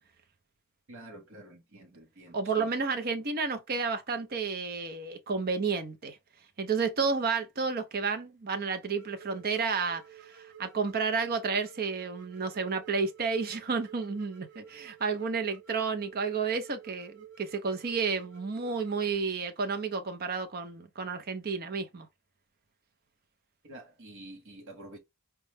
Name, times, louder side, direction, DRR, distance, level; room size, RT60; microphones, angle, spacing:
voice 1, 0.9-2.7 23.6-25.0, right 1 dB, 60° right, 1.0 m, -48 dB
voice 2, 2.3-6.2 6.6-22.1, right 5 dB, 45° right, 0.6 m, -31 dB
sound 1, 8.9-19.1, right 9 dB, 85° right, 0.7 m, -52 dB
4.5 x 2.1 x 3.3 m
head